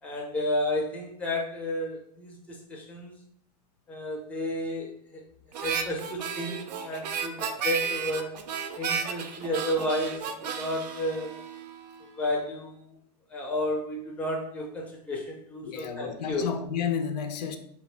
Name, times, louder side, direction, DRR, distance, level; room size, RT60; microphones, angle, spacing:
voice 1, 0.0-3.1 3.9-5.2 5.6-8.5 8.8-11.4 12.0-12.8 13.3-16.5, left 1 dB, 5° left, 0.4 m, -32 dB
Harmonica, 5.5-12.0, right 6 dB, 85° right, 0.4 m, -33 dB
voice 2, 15.6-17.6, left 7 dB, 80° left, 0.4 m, -31 dB
2.6 x 2.0 x 3.2 m
hypercardioid pair, 130°, 21 cm